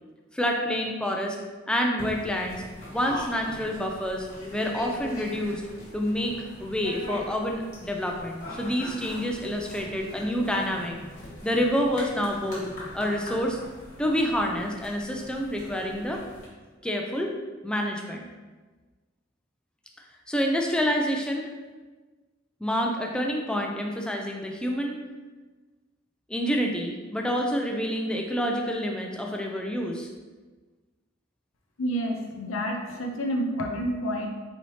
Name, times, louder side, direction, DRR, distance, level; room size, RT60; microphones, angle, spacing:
voice 1, 0.3-1.4 1.7-2.6 2.9-4.3 4.5-5.6 5.9-11.1 11.4-12.7 12.9-13.6 14.0-16.2 16.8-17.3 17.6-18.3 20.3-21.4 22.6-25.0 26.3-30.1, equal, 5° left, 1 dB, 0.3 m, -28 dB
sound 1, 2.0-16.5, left 1 dB, 40° left, 1.3 m, -41 dB
voice 2, 31.8-34.3, equal, 85° left, 2 dB, 0.6 m, -29 dB
4.2 x 3.2 x 2.7 m, 1.3 s
head